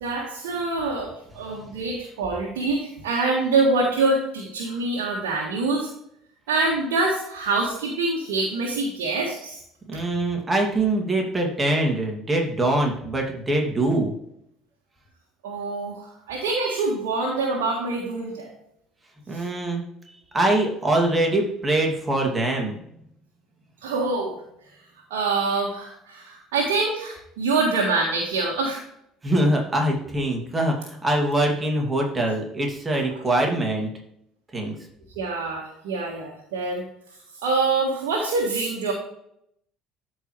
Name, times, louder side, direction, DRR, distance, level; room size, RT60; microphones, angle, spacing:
voice 1, 0.0-5.9 6.5-9.6 9.9-10.1 15.4-18.5 19.3-19.4 23.8-24.4 25.1-28.8 33.1-33.2 35.1-36.8 37.4-38.9, right 3 dB, 70° right, -2 dB, 1.6 m, -25 dB
voice 2, 9.9-14.1 19.3-19.8 20.3-22.9 29.2-33.9 34.5-34.8, right 1 dB, 20° right, 1 dB, 2.5 m, -23 dB
13.0 x 4.8 x 3.2 m, 0.73 s
figure-of-eight pair, 60°, 0 cm